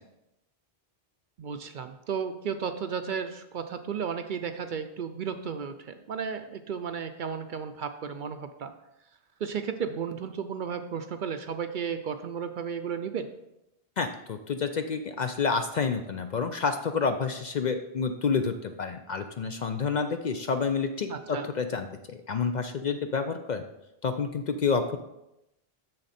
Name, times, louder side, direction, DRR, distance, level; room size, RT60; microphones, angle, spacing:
voice 1, 1.4-8.7 9.4-13.3 21.1-21.5, right 6 dB, 60° right, 8 dB, 0.6 m, -34 dB
voice 2, 14.0-23.6 24.0-25.0, left 5 dB, 55° left, 7 dB, 0.5 m, -29 dB
7.1 x 6.6 x 4.2 m, 0.88 s
omnidirectional pair, 1.1 m